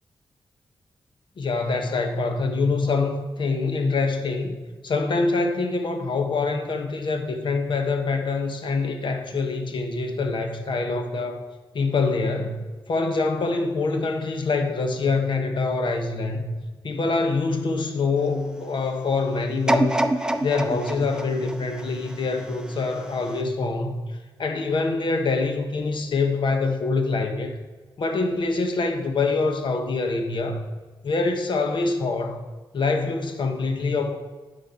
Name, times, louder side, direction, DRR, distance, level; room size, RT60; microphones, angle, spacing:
voice 1, 1.4-4.6 4.8-11.4 11.7-16.5 16.8-20.0 20.4-24.0 24.4-27.6 28.0-30.6 31.0-32.4 32.7-34.2, left 3 dB, 70° left, 1.0 m, -25 dB
sound 1, 19.7-22.7 23.3-23.4, right 1 dB, 10° right, 0.6 m, -26 dB
9.7 x 5.2 x 4.3 m
cardioid pair, 75°, 9 cm